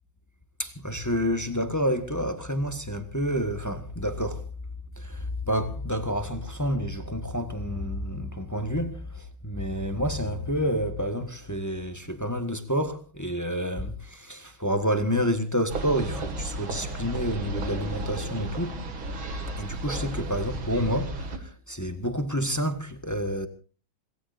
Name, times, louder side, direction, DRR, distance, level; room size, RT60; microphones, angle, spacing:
voice 1, 0.6-4.5 5.0-18.8 19.5-23.5, equal, 10° left, 1.2 m, -29 dB
sound 1, 15.7-21.4, right 2 dB, 75° right, 3.0 m, -33 dB
26.0 x 19.0 x 2.7 m
omnidirectional pair, 2.2 m